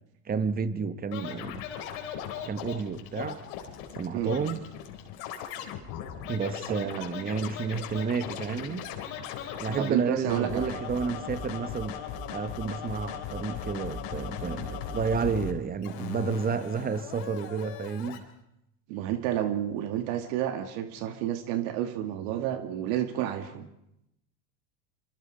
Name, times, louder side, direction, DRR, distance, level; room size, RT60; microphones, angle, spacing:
voice 1, 0.3-1.6 2.5-3.4 3.9-4.6 6.3-8.9 9.6-12.0 12.3-18.2, right 5 dB, 20° right, 1.2 m, -31 dB
Scratching (performance technique), 1.1-9.9 10.3-15.5 15.8-18.2, left 8 dB, 60° left, 4.1 m, -38 dB
voice 2, 6.7-7.0 9.8-10.8 18.9-23.7, right 11 dB, 65° right, 1.9 m, -30 dB
26.0 x 25.5 x 5.1 m
supercardioid pair, 130°, 44 cm